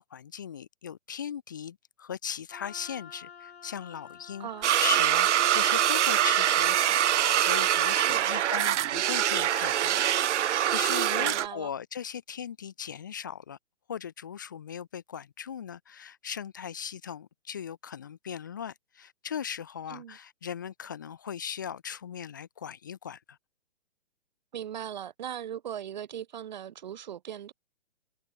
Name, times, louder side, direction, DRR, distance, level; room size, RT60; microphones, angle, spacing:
voice 1, 0.0-4.5 4.8-10.0 10.3-13.6 13.9-23.4, left 8 dB, 20° left, 0.5 m, -38 dB
Wind instrument woodwind instrument, 2.5-8.8, left 7 dB, 65° left, 7.9 m, -49 dB
voice 2, 4.4-4.7 8.0-8.3 11.2-11.7 19.9-20.2 24.5-27.5, right 10 dB, 40° right, 1.1 m, -39 dB
sound 1, 4.6-11.5, right 11 dB, 85° right, 0.5 m, -24 dB
hypercardioid pair, 165°, 34 cm